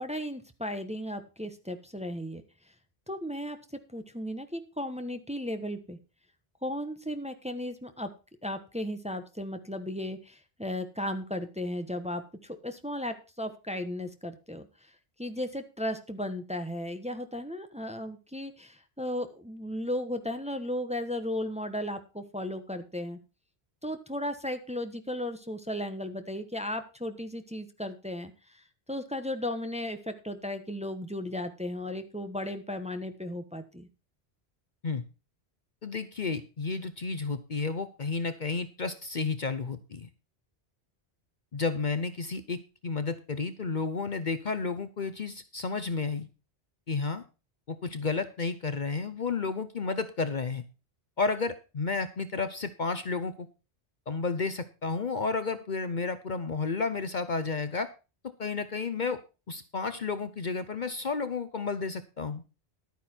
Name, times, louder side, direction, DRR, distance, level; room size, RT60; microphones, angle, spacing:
voice 1, 0.0-2.4 3.1-3.6 3.9-6.0 6.6-8.1 8.4-14.7 15.2-23.2 23.8-33.9, left 1 dB, 5° right, 8 dB, 1.1 m, -35 dB
voice 2, 35.8-40.1 41.5-46.3 46.9-47.2 47.7-50.6 51.2-53.5 54.1-57.9 58.2-59.2 59.5-62.4, left 4 dB, 50° left, 11 dB, 0.9 m, -32 dB
12.0 x 9.4 x 4.4 m, 0.31 s
omnidirectional pair, 1.1 m